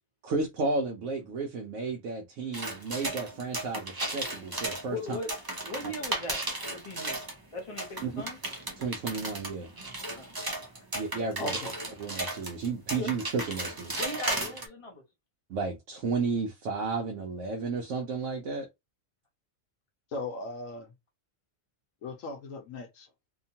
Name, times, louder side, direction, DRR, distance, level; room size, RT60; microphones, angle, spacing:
voice 1, 0.2-5.2 5.8-5.9 8.0-8.2 8.8-9.7 10.9-11.6 12.0-14.1 15.5-18.7, right 4 dB, 70° right, 1.0 m, -33 dB
sound 1, 2.5-7.4 7.8-14.7, right 2 dB, 35° right, 0.3 m, -35 dB
voice 2, 4.9-5.4 5.6-6.4 6.7-7.2 7.5-8.4 10.1-10.3 13.0-13.1 14.0-15.0, left 2 dB, 30° left, 0.7 m, -38 dB
voice 3, 11.4-11.7 20.1-20.9 22.0-23.1, left 2 dB, 75° left, 1.0 m, -37 dB
2.9 x 2.2 x 2.7 m
omnidirectional pair, 1.4 m